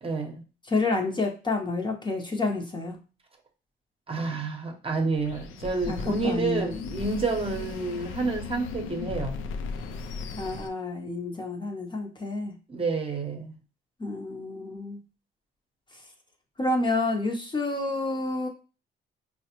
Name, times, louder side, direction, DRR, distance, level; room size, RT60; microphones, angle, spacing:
voice 1, 0.0-0.4 4.1-9.4 12.7-13.5, right 3 dB, 30° right, 0.8 m, -29 dB
voice 2, 0.7-3.0 5.9-6.0 6.2-6.7 10.3-12.5 14.0-15.0 16.6-18.5, left 2 dB, 25° left, 0.7 m, -29 dB
sound 1, 5.1-10.7, left 5 dB, 85° left, 0.4 m, -37 dB
4.5 x 2.1 x 2.9 m
cardioid pair, 90°, 20 cm